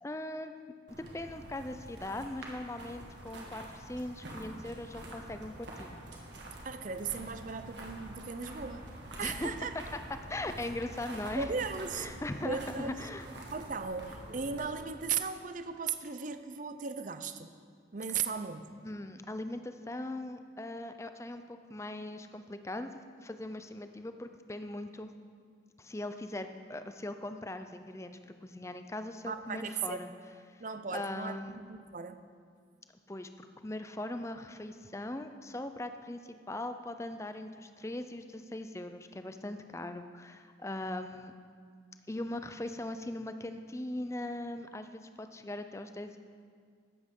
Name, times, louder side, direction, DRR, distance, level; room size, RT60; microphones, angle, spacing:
voice 1, 0.0-0.5 1.1-6.0 9.2-9.5 10.3-11.5 11.9-13.2 18.8-22.9 23.2-25.1 25.8-30.1 30.5-30.6 30.9-31.6 33.1-41.3 42.1-46.2, left 1 dB, 15° left, 8 dB, 0.5 m, -40 dB
sound 1, 0.9-14.7, right 1 dB, 70° right, 1.9 m, -46 dB
voice 2, 6.6-8.8 9.2-9.8 11.4-12.1 12.4-13.0 13.5-17.5 17.9-18.8 29.3-30.0 30.6-32.2, right 5 dB, 45° right, 10 dB, 0.6 m, -37 dB
13.0 x 8.6 x 5.4 m, 2.1 s
head